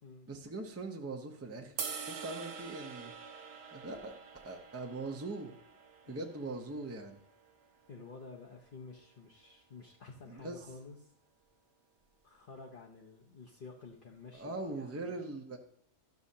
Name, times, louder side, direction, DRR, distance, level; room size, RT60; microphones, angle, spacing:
voice 1, 0.3-3.1 3.7-5.5 6.1-7.2 10.3-10.6 14.3-15.6, right 2 dB, 15° right, 3 dB, 0.5 m, -41 dB
sound 1, 1.8-8.0, right 5 dB, 55° right, 1.0 m, -46 dB
voice 2, 6.0-6.7 7.9-11.1 12.2-15.2, left 4 dB, 50° left, -2 dB, 0.9 m, -51 dB
12.0 x 6.2 x 2.8 m, 0.72 s
omnidirectional pair, 1.3 m